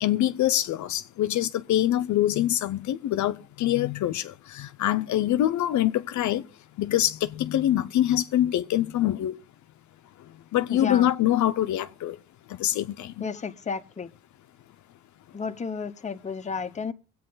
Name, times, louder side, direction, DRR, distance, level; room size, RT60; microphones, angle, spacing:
voice 1, 0.0-6.4 6.8-9.4 10.5-12.1 12.6-13.3, left 12 dB, 70° left, 0.7 m, -24 dB
voice 2, 10.7-11.1 13.2-14.1 15.3-16.9, left 5 dB, 25° left, 0.8 m, -32 dB
22.5 x 8.6 x 3.8 m
cardioid pair, 90°, 30 cm